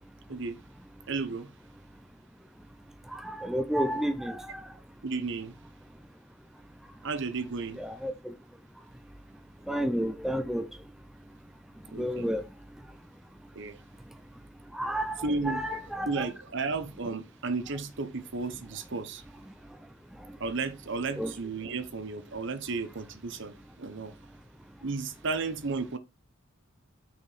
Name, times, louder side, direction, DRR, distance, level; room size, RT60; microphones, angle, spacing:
voice 1, 1.1-1.5 3.9-4.0 5.0-5.6 7.0-7.8 11.9-12.3 13.5-13.8 15.2-19.2 20.4-24.1 24.8-26.0, right 4 dB, 60° right, 0.8 m, -33 dB
voice 2, 3.4-4.4 7.8-8.1 9.7-10.6 12.0-12.4 14.8-15.1 15.5-16.2 21.2-21.3, equal, ahead, 0.5 m, -30 dB
5.8 x 4.7 x 4.0 m
head